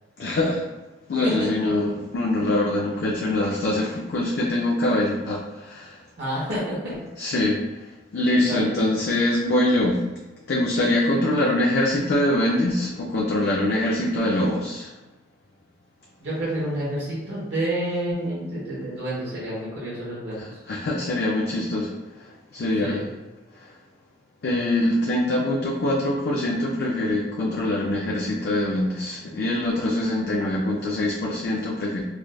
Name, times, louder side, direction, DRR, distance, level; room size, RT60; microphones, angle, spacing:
voice 1, 0.2-0.6 1.1-6.0 7.2-7.6 8.1-10.0 10.5-14.9 20.4-21.9 22.2-23.1 23.6-23.7 24.4-32.0, left 1 dB, 60° left, -3 dB, 0.4 m, -24 dB
voice 2, 6.2-7.0 8.5-8.7 16.2-20.6 22.8-23.0, right 1 dB, 75° right, -9 dB, 0.9 m, -29 dB
4.7 x 2.2 x 2.2 m, 1.1 s
head